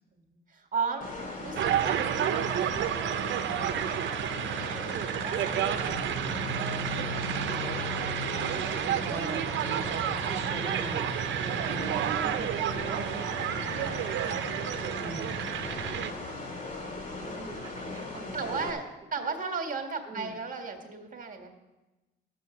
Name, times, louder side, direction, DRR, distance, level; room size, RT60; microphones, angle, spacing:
voice 1, 0.1-1.1 1.4-3.3 3.6-4.8 5.1-5.5 5.8-7.2 7.5-8.1 8.5-9.1 9.4-10.2 11.3-11.8 12.3-12.8 13.4-14.6 15.7-16.2 18.3-21.5, right 5 dB, 40° right, 4 dB, 1.7 m, -38 dB
sound 1, 1.0-18.7, left 2 dB, 40° left, 3.4 m, -39 dB
sound 2, 1.6-16.1, right 10 dB, 70° right, 0.8 m, -30 dB
sound 3, 5.8-11.6, left 3 dB, 60° left, 4.4 m, -42 dB
voice 2, 9.0-9.6 10.3-11.2 12.9-13.3 15.0-15.4 17.2-18.8 19.2-19.3 20.1-20.4, right 2 dB, 20° right, -1 dB, 1.6 m, -42 dB
12.0 x 6.8 x 7.0 m, 1.1 s
cardioid pair, 90°, 20 cm